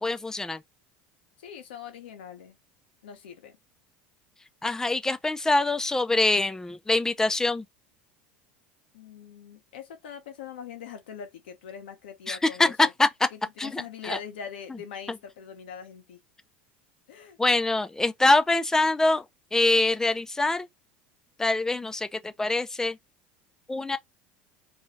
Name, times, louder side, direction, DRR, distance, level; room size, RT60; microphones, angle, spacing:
voice 1, 0.0-0.6 4.6-7.6 12.3-13.1 13.6-14.2 17.4-19.2 19.5-20.7 21.4-23.0 23.7-24.0, left 2 dB, 10° left, 0.4 m, -24 dB
voice 2, 1.4-2.6 3.0-3.6 8.9-12.9 13.3-16.2 17.1-17.4, left 7 dB, 90° left, 0.8 m, -42 dB
2.6 x 2.3 x 3.1 m
supercardioid pair, 100°, 5 cm